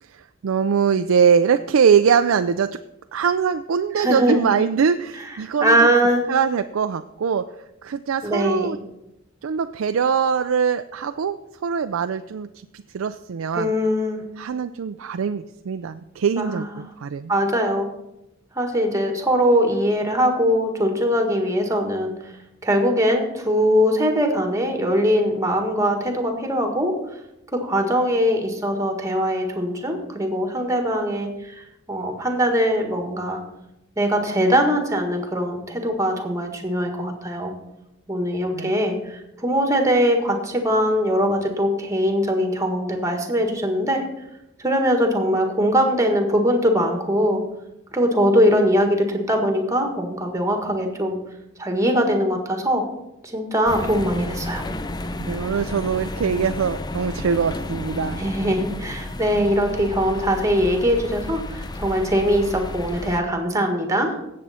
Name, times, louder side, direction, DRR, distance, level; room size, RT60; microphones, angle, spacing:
voice 1, 0.0-2.8 3.1-5.9 6.3-7.5 7.8-8.8 9.4-12.5 12.7-13.7 14.4-17.3 38.5-38.7 55.2-58.2, right 6 dB, 90° right, 9 dB, 0.4 m, -22 dB
voice 2, 4.0-4.4 5.6-6.3 8.2-8.7 13.5-14.2 16.4-16.7 17.3-17.9 18.5-22.1 22.6-26.9 27.5-33.4 34.0-37.5 38.1-44.0 44.6-47.4 47.9-51.2 51.6-52.8 53.2-54.6 58.2-64.1, equal, 15° right, 4 dB, 1.7 m, -21 dB
sound 1, 53.7-63.2, left 2 dB, 20° left, 0.5 m, -32 dB
17.0 x 7.5 x 4.2 m, 0.89 s
head